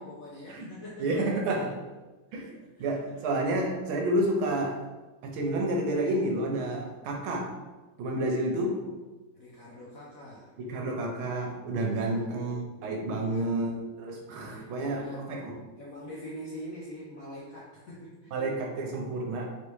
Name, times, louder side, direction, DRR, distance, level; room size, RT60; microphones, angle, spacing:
voice 1, 0.0-1.2 2.3-3.2 8.7-8.9 9.4-10.6 12.1-12.4 12.7-12.8 13.2-13.8 14.4-18.5, equal, 70° left, -6 dB, 0.8 m, -45 dB
voice 2, 1.0-1.8 2.3-2.5 2.8-4.8 5.2-7.5 8.0-8.7 10.6-15.5 18.3-19.5, right 1 dB, 75° right, 1 dB, 1.5 m, -30 dB
4.2 x 3.3 x 3.1 m, 1.2 s
omnidirectional pair, 2.3 m